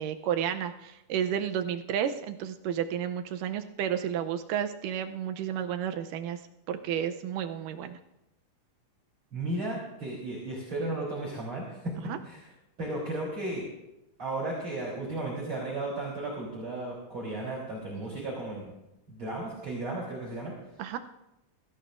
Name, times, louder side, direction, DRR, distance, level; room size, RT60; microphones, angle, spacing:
voice 1, 0.0-6.4 6.7-8.0 12.1-12.2 20.8-21.0, right 9 dB, 85° right, 8 dB, 2.3 m, -31 dB
voice 2, 9.3-11.9 12.2-12.5 12.8-13.6 14.2-18.7 19.1-20.5, right 2 dB, 40° right, -5 dB, 4.1 m, -34 dB
23.0 x 14.5 x 2.5 m, 0.90 s
omnidirectional pair, 3.7 m